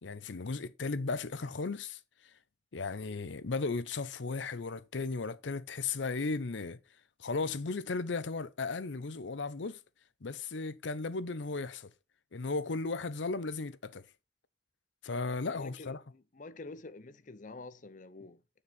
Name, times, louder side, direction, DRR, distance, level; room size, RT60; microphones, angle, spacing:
voice 1, 0.0-2.0 2.7-6.8 7.2-9.8 10.2-11.9 12.3-14.0 15.0-16.0, left 3 dB, 85° left, 0.7 m, -35 dB
voice 2, 15.5-18.4, left 3 dB, 45° left, 0.7 m, -48 dB
7.4 x 6.8 x 4.1 m
head